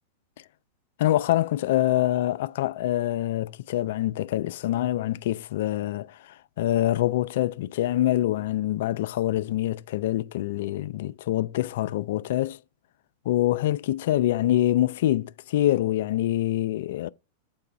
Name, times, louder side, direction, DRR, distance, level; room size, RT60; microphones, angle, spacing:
voice 1, 1.0-6.1 6.6-12.6 13.3-17.1, left 14 dB, 65° left, 0.3 m, -25 dB
7.1 x 4.7 x 3.3 m
hypercardioid pair, 105°, 0 cm